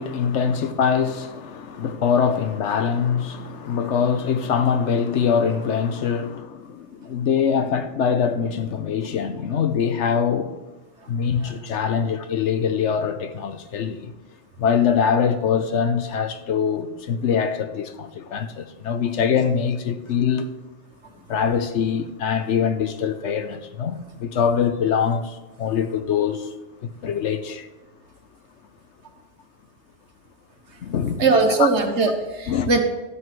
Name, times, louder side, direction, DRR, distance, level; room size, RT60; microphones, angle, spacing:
voice 1, 0.0-10.6 11.1-14.1 14.6-20.5 21.3-26.5 27.0-27.7 30.8-31.2 31.6-31.7 32.5-32.7, left 7 dB, 70° left, 1.0 m, -23 dB
voice 2, 31.2-32.8, right 4 dB, 60° right, 1.5 m, -20 dB
12.5 x 4.7 x 7.6 m
omnidirectional pair, 1.3 m